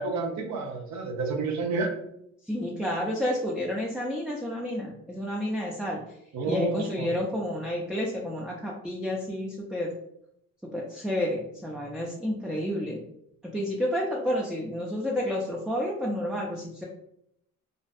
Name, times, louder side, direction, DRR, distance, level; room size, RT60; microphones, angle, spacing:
voice 1, 0.0-1.9 6.3-7.1, right 3 dB, 65° right, 3 dB, 0.6 m, -30 dB
voice 2, 2.5-6.0 6.5-9.9 10.7-13.0 13.5-16.8, left 1 dB, ahead, -3 dB, 0.3 m, -30 dB
2.6 x 2.1 x 2.4 m, 0.77 s
cardioid pair, 90°, 30 cm